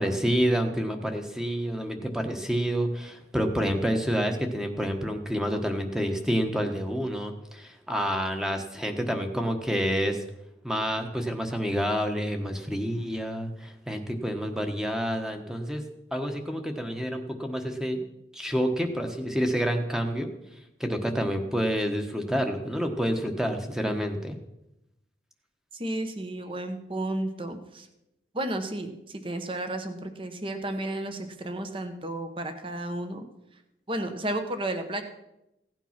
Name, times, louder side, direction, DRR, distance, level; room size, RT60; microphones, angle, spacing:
voice 1, 0.0-10.2 10.6-15.8 16.1-18.0 18.3-20.3 20.8-24.4, equal, 5° right, 5 dB, 1.2 m, -28 dB
voice 2, 25.7-27.9 28.3-33.3 33.9-35.0, right 1 dB, 30° right, 8 dB, 1.1 m, -32 dB
16.0 x 9.2 x 5.9 m, 0.89 s
head